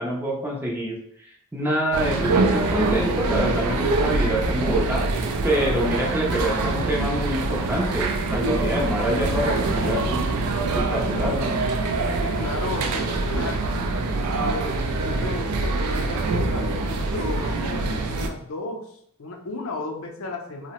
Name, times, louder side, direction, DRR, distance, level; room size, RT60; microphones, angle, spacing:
voice 1, 0.0-5.0 5.4-10.2 10.7-11.5, equal, 10° right, -2 dB, 0.4 m, -26 dB
sound 1, 1.9-18.3, right 3 dB, 85° right, 0.4 m, -24 dB
voice 2, 12.2-13.6 14.4-20.7, left 2 dB, 65° left, 2 dB, 0.5 m, -34 dB
2.8 x 2.0 x 2.9 m, 0.67 s
head